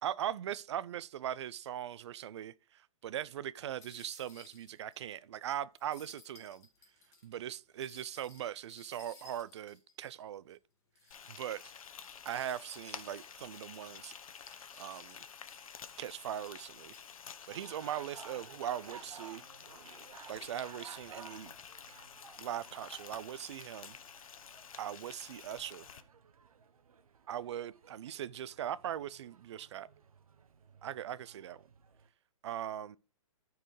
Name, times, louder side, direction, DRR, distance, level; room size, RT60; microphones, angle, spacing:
voice 1, 0.0-6.7 7.2-10.6 11.3-11.7 12.2-14.1 14.5-15.3 16.0-16.9 17.5-19.4 20.3-21.5 22.4-24.0 24.8-25.9 27.3-29.9 30.8-31.6 32.4-33.0, right 10 dB, 50° right, 0.5 m, -40 dB
sound 1, 3.8-5.1 5.4-5.5 5.8-10.5 11.0-11.5 12.0-15.9 16.4-17.3, left 3 dB, 15° left, 2.0 m, -60 dB
Frying (food), 11.1-26.0, left 7 dB, 75° left, 0.9 m, -51 dB
sound 2, 17.5-32.1, right 6 dB, 80° right, 1.0 m, -56 dB
13.5 x 4.7 x 3.2 m
hypercardioid pair, 155°, 18 cm